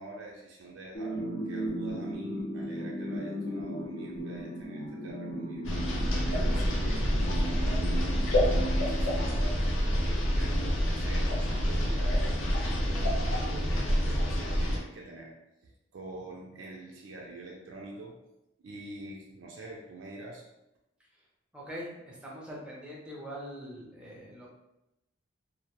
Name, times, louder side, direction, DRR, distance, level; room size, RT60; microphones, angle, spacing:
voice 1, 0.0-5.7 6.3-12.2 12.8-15.3 15.6-18.2 18.6-20.4, right 2 dB, 85° right, -2 dB, 0.4 m, -45 dB
sound 1, 0.9-10.0, right 1 dB, 50° left, 0.7 m, -37 dB
sound 2, 5.6-14.8, equal, 85° left, 0.5 m, -27 dB
voice 2, 21.5-24.5, equal, 5° right, -5 dB, 0.5 m, -42 dB
2.1 x 2.1 x 2.8 m, 0.88 s
head